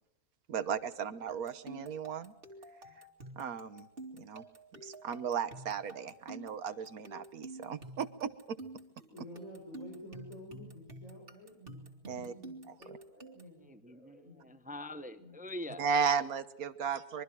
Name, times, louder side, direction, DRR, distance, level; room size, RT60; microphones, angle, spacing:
voice 1, 0.5-2.3 2.9-3.0 3.3-3.9 4.1-4.4 4.8-8.6 12.1-12.3 12.7-13.0 15.8-17.2, right 6 dB, 80° right, 12 dB, 1.6 m, -35 dB
sound 1, 1.3-13.6, right 1 dB, 40° right, 2.7 m, -50 dB
voice 2, 9.1-14.5 15.1-15.4, left 1 dB, 65° left, 0 dB, 5.7 m, -51 dB
voice 3, 13.6-15.8, left 1 dB, 5° right, 10 dB, 0.8 m, -44 dB
24.5 x 23.0 x 4.8 m, 0.78 s
omnidirectional pair, 1.5 m